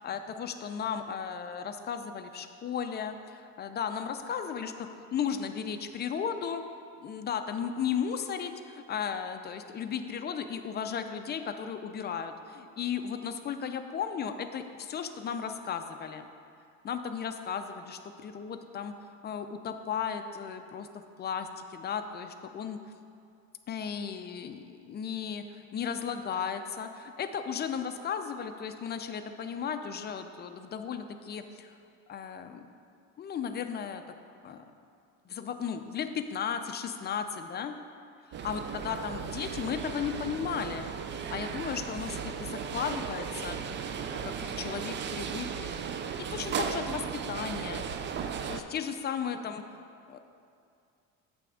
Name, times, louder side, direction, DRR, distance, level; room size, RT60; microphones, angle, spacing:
voice 1, 0.0-6.6 7.0-16.3 16.8-18.9 19.2-20.9 21.2-22.8 23.7-31.7 32.1-32.6 33.2-34.0 34.4-34.6 35.2-37.8 38.2-43.6 44.1-45.7 46.3-47.8 48.5-49.6 50.1-50.2, left 7 dB, 30° left, 7 dB, 0.5 m, -35 dB
sound 1, 38.3-48.6, right 7 dB, 35° right, 0.4 m, -36 dB
8.4 x 3.4 x 6.3 m, 2.4 s
cardioid pair, 115°, 31 cm